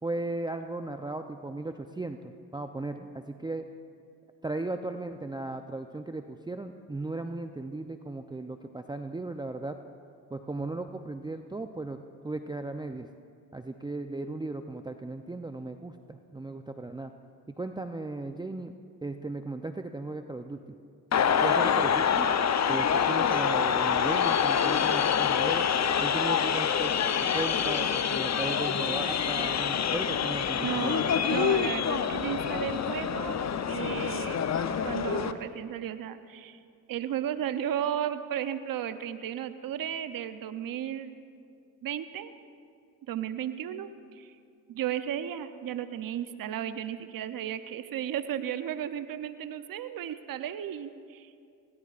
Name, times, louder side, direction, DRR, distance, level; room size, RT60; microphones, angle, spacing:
voice 1, 0.0-3.7 4.4-9.8 10.3-13.1 13.5-17.1 17.6-18.7 19.0-20.6 21.4-22.3 22.7-25.7 26.0-27.0 27.3-31.1, right 2 dB, 10° right, 6 dB, 0.6 m, -36 dB
sound 1, 21.1-35.3, left 7 dB, 45° left, 0.8 m, -26 dB
voice 2, 30.6-33.4 33.7-34.5 34.8-36.6 36.9-41.2 41.8-42.3 43.1-44.3 44.7-51.4, right 10 dB, 60° right, 11 dB, 0.8 m, -34 dB
20.0 x 18.0 x 2.5 m, 2.3 s
supercardioid pair, 50°, 39 cm